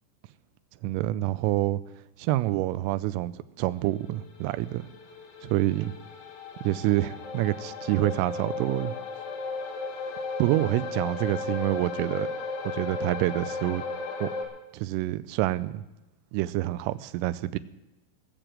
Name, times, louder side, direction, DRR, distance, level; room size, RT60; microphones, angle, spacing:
voice 1, 0.8-1.8 2.2-4.8 5.4-5.9 6.6-8.9 10.4-12.3 12.6-13.8 14.2-14.3 14.7-15.8 16.3-17.6, right 16 dB, 85° right, 14 dB, 3.1 m, -27 dB
sound 1, 4.1-14.5, left 4 dB, 90° left, 4.5 m, -35 dB
17.5 x 6.9 x 7.5 m, 0.97 s
omnidirectional pair, 5.9 m